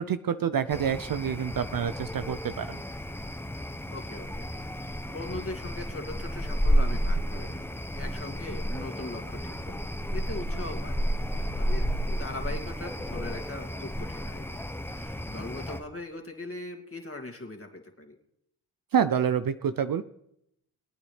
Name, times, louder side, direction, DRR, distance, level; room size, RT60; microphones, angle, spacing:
voice 1, 0.0-2.8 18.9-20.0, right 8 dB, 45° right, 12 dB, 0.6 m, -27 dB
sound 1, 0.7-15.8, equal, 5° left, 1.1 m, -31 dB
voice 2, 3.9-4.5 5.1-7.7 7.9-9.8 10.1-14.6 14.9-18.2, left 2 dB, 25° left, 3 dB, 2.5 m, -40 dB
22.5 x 8.8 x 3.4 m, 0.77 s
supercardioid pair, 45°, 49 cm